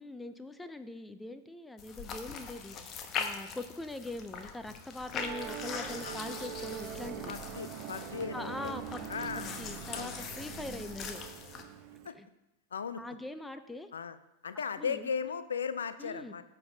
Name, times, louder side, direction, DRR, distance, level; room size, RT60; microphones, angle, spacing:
voice 1, 0.0-7.3 8.3-9.1 9.3-11.2 12.1-12.3 13.0-13.9 14.8-15.1 16.0-16.3, left 2 dB, 10° left, 10 dB, 0.5 m, -42 dB
sound 1, 1.8-11.6, left 6 dB, 35° left, 0.9 m, -42 dB
Musical instrument, 5.2-12.1, right 10 dB, 40° right, 0.7 m, -43 dB
voice 2, 7.3-8.7 9.1-9.5 9.9-10.2 12.0-12.1 12.7-13.0 13.9-14.2 14.4-16.4, left 6 dB, 80° left, 12 dB, 0.4 m, -36 dB
13.0 x 5.3 x 2.7 m, 0.93 s
hypercardioid pair, 100°, 0 cm